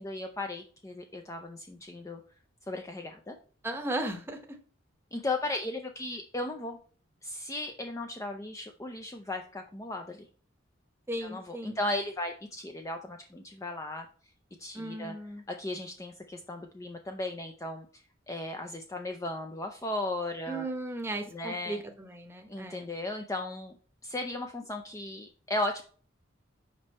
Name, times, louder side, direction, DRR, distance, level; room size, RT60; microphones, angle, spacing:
voice 1, 0.0-2.2 2.7-3.4 5.1-6.8 7.2-10.3 11.2-14.1 14.6-15.2 15.5-17.9 18.3-20.7 21.3-21.8 22.5-23.7 24.0-25.8, left 2 dB, 15° left, 4 dB, 0.4 m, -36 dB
voice 2, 3.6-4.4 11.1-11.8 14.7-15.4 20.5-22.9, right 1 dB, 10° right, 5 dB, 0.9 m, -36 dB
5.3 x 5.2 x 4.1 m, 0.41 s
head